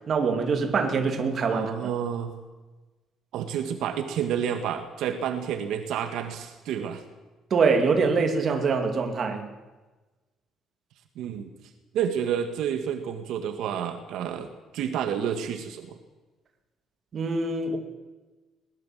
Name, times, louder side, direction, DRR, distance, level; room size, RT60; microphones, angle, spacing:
voice 1, 0.1-1.7 7.5-9.5 17.1-17.8, right 4 dB, 35° right, 4 dB, 2.8 m, -24 dB
voice 2, 1.5-2.3 3.3-7.0 11.2-11.5 11.9-15.9, right 8 dB, 65° right, 6 dB, 2.1 m, -30 dB
22.5 x 19.5 x 7.8 m, 1.2 s
cardioid pair, 175°, 0 cm